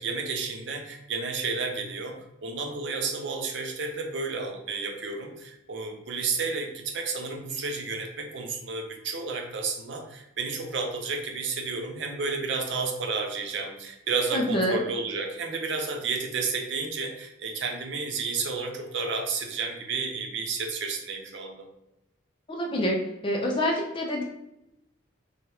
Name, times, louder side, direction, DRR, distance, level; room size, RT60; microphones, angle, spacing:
voice 1, 0.0-21.7, right 4 dB, 65° right, 3 dB, 0.5 m, -31 dB
voice 2, 14.3-14.8 22.5-23.0 23.2-24.2, equal, 25° left, 0 dB, 0.4 m, -26 dB
2.8 x 2.3 x 3.2 m, 0.86 s
head